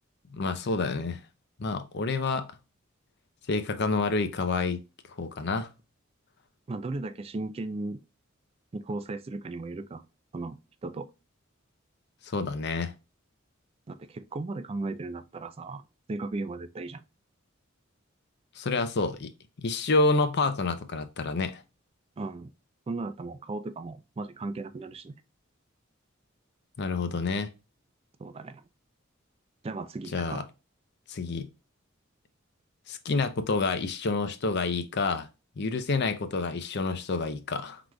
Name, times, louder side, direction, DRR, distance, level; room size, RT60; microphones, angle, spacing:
voice 1, 0.3-1.2 1.6-2.5 3.5-4.8 5.2-5.7 12.2-12.9 18.6-19.3 19.6-21.6 26.8-27.5 30.1-30.4 31.1-31.5 32.9-35.3 35.6-37.8, left 3 dB, 55° left, 0.6 m, -28 dB
voice 2, 6.7-8.0 8.7-10.0 10.3-11.1 13.9-15.8 16.1-17.0 22.2-22.5 22.9-25.1 28.2-28.6 29.6-30.5, right 2 dB, 30° right, 0.4 m, -36 dB
4.6 x 3.9 x 2.2 m
head